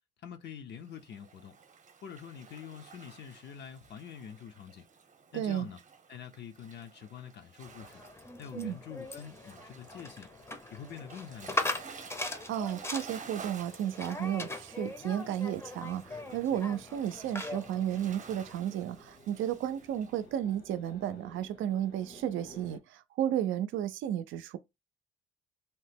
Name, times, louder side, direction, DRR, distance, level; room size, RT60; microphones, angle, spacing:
voice 1, 0.2-1.5 2.0-4.8 5.3-5.8 6.1-8.0 8.4-10.3 10.7-11.8, left 8 dB, 60° left, 0.5 m, -46 dB
Waves surf, 0.8-20.3, right 5 dB, 40° right, 0.8 m, -53 dB
voice 2, 5.3-5.7 8.6-8.8 12.5-24.6, right 10 dB, 80° right, 0.4 m, -33 dB
sound 1, 7.6-18.6, left 2 dB, 15° left, 0.5 m, -40 dB
sound 2, 16.0-22.8, equal, 75° left, 1.3 m, -56 dB
2.9 x 2.1 x 3.3 m
cardioid pair, 90°, 20 cm